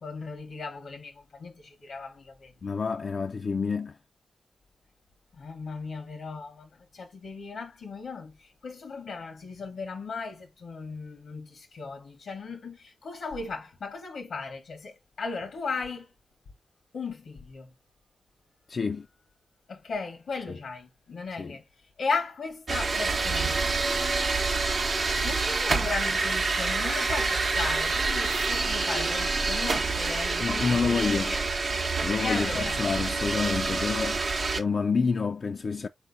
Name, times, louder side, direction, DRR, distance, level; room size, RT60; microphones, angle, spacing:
voice 1, 0.0-2.5 5.4-16.1 16.9-17.7 19.7-21.6 22.0-23.7 25.2-31.4 32.2-32.8, left 4 dB, 90° left, 0.9 m, -36 dB
voice 2, 2.6-4.0 18.7-19.1 20.5-20.6 21.4-21.6 30.4-31.4 32.0-34.2 34.6-35.9, left 5 dB, 60° left, 0.3 m, -28 dB
sound 1, 22.7-34.6, right 3 dB, 60° right, 0.8 m, -27 dB
4.2 x 2.6 x 3.8 m
wide cardioid pair, 80°, 0 cm